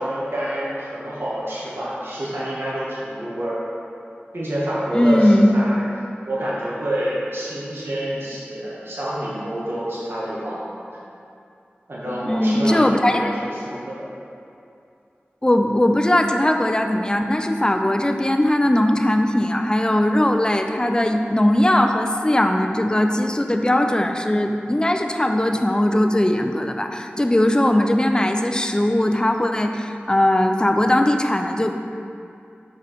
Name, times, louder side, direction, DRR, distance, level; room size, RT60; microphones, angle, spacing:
voice 1, 0.0-3.6 4.3-5.8 6.2-10.7 11.9-12.8 13.1-13.9, right 1 dB, 65° right, -8 dB, 1.5 m, -27 dB
voice 2, 4.9-5.5 12.3-13.3 15.4-31.7, left 1 dB, 20° left, 5 dB, 0.5 m, -19 dB
6.8 x 4.7 x 5.1 m, 2.5 s
wide cardioid pair, 55°, 4 cm